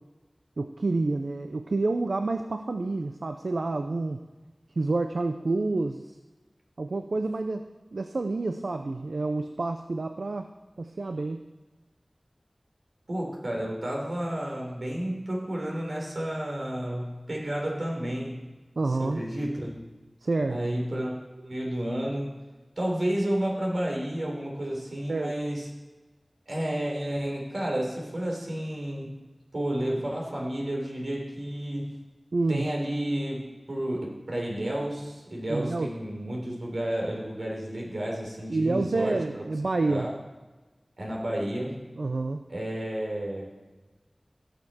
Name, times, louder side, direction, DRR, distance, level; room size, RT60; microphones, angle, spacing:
voice 1, 0.6-4.2 4.8-6.0 6.8-10.5 10.8-11.4 18.8-19.2 20.2-20.6 25.1-25.3 32.3-32.7 35.5-35.9 38.5-40.1 42.0-42.4, right 3 dB, 90° right, 7 dB, 0.5 m, -28 dB
voice 2, 13.1-18.5 19.0-19.7 20.5-21.2 21.4-22.4 22.8-25.7 26.5-29.2 29.5-32.0 32.5-39.4 39.9-40.2 41.0-41.8 42.5-43.6, right 1 dB, 70° right, -1 dB, 3.5 m, -31 dB
17.5 x 6.8 x 4.2 m, 1.2 s
wide cardioid pair, 55°, 0 cm